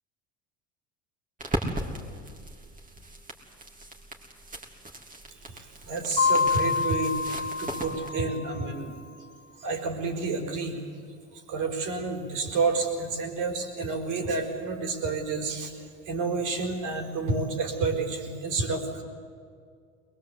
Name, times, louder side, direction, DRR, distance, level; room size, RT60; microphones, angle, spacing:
sound 1, 1.4-8.1, right 1 dB, 20° right, 3.5 m, -37 dB
voice 1, 5.5-9.0 9.6-10.7 11.5-15.7 16.1-19.0, right 3 dB, 55° right, 3 dB, 4.7 m, -29 dB
Mallet percussion, 6.2-8.8, left 5 dB, 10° left, 3.4 m, -27 dB
22.0 x 21.0 x 8.4 m, 2.1 s
hypercardioid pair, 85°, 36 cm